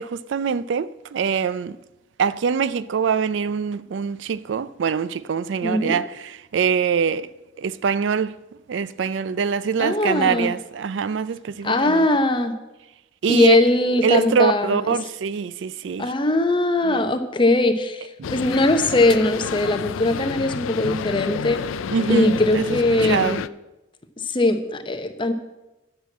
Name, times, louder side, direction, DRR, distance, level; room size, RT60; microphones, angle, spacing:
voice 1, 0.0-1.8 2.2-7.3 7.6-8.3 8.7-12.1 13.2-13.6 14.0-16.1 16.9-17.0 18.2-18.3 21.9-23.4, right 6 dB, 65° right, 0.4 m, -24 dB
voice 2, 5.6-5.9 9.8-10.5 11.6-12.5 13.3-14.8 16.0-21.6 22.1-23.4 24.2-25.3, left 2 dB, 25° left, 0.8 m, -20 dB
sound 1, 18.2-23.5, left 7 dB, 90° left, 0.4 m, -30 dB
10.5 x 6.1 x 7.3 m
head